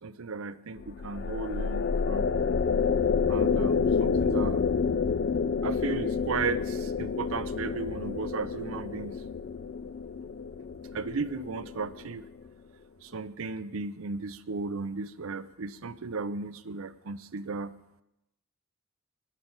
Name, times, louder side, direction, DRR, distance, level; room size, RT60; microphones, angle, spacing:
voice 1, 0.0-2.3 3.3-4.6 5.6-9.1 10.9-12.2 13.0-17.7, right 4 dB, 80° right, 15 dB, 0.6 m, -35 dB
sound 1, 0.8-12.2, left 5 dB, 50° left, 0.3 m, -29 dB
19.5 x 6.7 x 5.6 m, 0.88 s
head